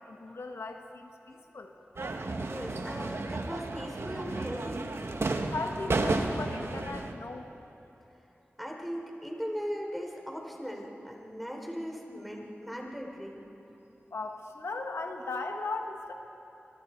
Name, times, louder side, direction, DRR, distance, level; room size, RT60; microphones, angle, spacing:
voice 1, 0.0-1.7 5.5-7.4 14.1-16.1, left 3 dB, 90° left, 3 dB, 1.4 m, -37 dB
sound 1, 2.0-7.1, right 2 dB, 70° right, 1.3 m, -32 dB
voice 2, 2.5-4.9 8.6-13.4, equal, ahead, 0 dB, 3.8 m, -38 dB
25.5 x 22.5 x 4.5 m, 2.9 s
wide cardioid pair, 60°, 4 cm